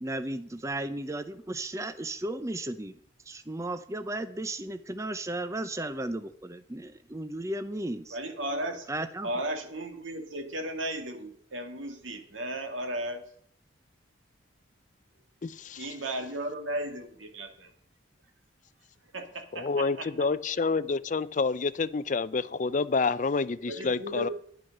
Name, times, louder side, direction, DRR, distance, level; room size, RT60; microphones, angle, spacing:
voice 1, 0.0-2.9 3.3-8.2 8.9-9.3, right 1 dB, 15° right, 0.5 m, -35 dB
voice 2, 8.1-8.9 9.2-13.2 15.8-17.7 19.1-20.1 23.7-24.3, right 1 dB, 85° right, 2.1 m, -35 dB
voice 3, 15.4-15.9 19.5-24.3, left 4 dB, 40° left, 0.4 m, -28 dB
11.0 x 10.5 x 6.6 m
head